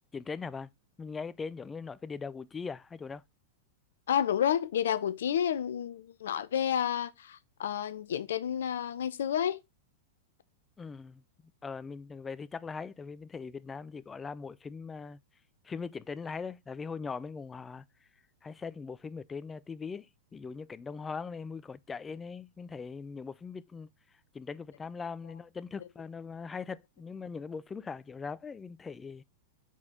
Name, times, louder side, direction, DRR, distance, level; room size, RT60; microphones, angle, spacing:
voice 1, 0.1-0.7 1.0-3.2 10.8-11.2 11.6-15.2 15.6-17.8 18.4-23.9 24.3-29.2, left 5 dB, 15° left, 0.4 m, -40 dB
voice 2, 4.1-9.6, left 9 dB, 70° left, 0.6 m, -30 dB
4.5 x 4.2 x 5.6 m
hypercardioid pair, 105°, 0 cm